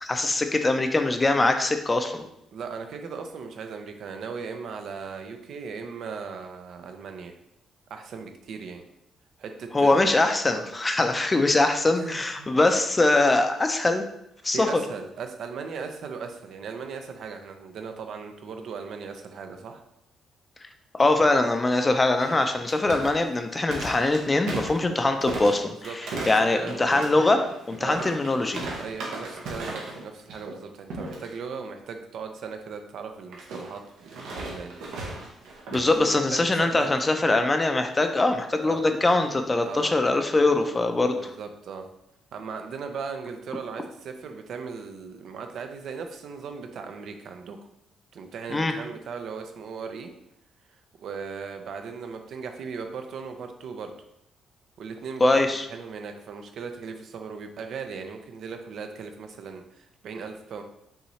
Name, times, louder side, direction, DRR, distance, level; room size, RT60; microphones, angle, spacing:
voice 1, 0.0-2.3 9.7-14.0 14.4-14.8 20.9-25.7 26.3-28.6 35.7-41.3 48.5-48.7 55.2-55.6, left 2 dB, 25° left, 6 dB, 0.5 m, -22 dB
voice 2, 2.5-7.3 7.9-8.8 9.4-10.1 10.5-10.7 11.9-12.5 14.5-19.8 25.6-27.0 27.8-28.0 28.8-34.7 35.9-36.9 38.6-39.1 39.6-39.9 41.2-41.9 42.3-47.6 48.1-50.1 51.0-53.9 54.8-55.4 55.7-60.6, right 5 dB, 70° right, 6 dB, 0.6 m, -38 dB
sound 1, 22.2-30.0 30.3-30.6 30.9-31.3 33.3-36.0, right 2 dB, 85° right, 1.0 m, -36 dB
5.6 x 2.7 x 3.1 m, 0.79 s
cardioid pair, 90°, 0 cm